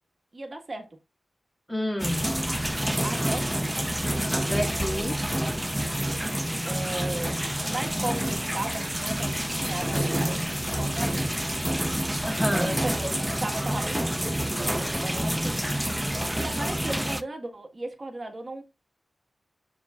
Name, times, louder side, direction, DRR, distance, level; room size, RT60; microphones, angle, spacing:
voice 1, 0.3-1.0 3.0-3.8 4.8-5.1 5.6-6.2 6.6-11.3 12.5-15.6 16.4-18.6, right 2 dB, 40° right, 1.6 m, -36 dB
voice 2, 1.7-2.5 4.3-5.2 12.2-12.8, left 1 dB, 10° left, 2.2 m, -30 dB
sound 1, 2.0-17.2, right 1 dB, 5° right, 0.7 m, -28 dB
11.5 x 4.8 x 2.4 m
wide cardioid pair, 90°, 0 cm